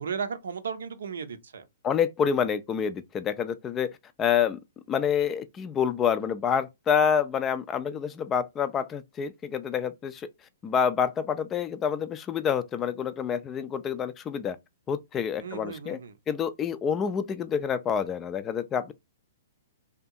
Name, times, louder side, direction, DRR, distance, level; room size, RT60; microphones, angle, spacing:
voice 1, 0.0-1.7 15.4-16.1, right 6 dB, 75° right, 0.5 m, -35 dB
voice 2, 1.8-3.9 4.2-4.6 4.9-10.3 10.6-14.6 14.9-16.0 16.3-18.9, left 7 dB, 20° left, 0.3 m, -27 dB
2.6 x 2.3 x 2.6 m
hypercardioid pair, 130°, 0 cm